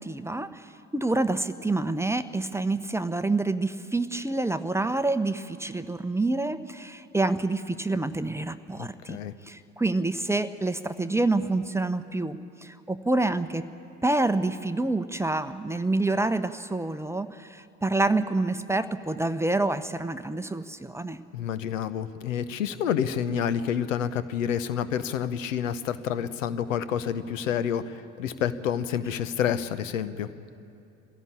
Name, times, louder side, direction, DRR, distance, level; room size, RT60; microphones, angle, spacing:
voice 1, 0.0-9.2 9.5-13.7 14.0-21.2, right 2 dB, 5° right, 11 dB, 0.8 m, -27 dB
voice 2, 8.8-9.3 21.3-30.3, left 8 dB, 75° left, 14 dB, 0.8 m, -29 dB
22.0 x 16.5 x 8.6 m, 2.7 s
figure-of-eight pair, 55°, 39 cm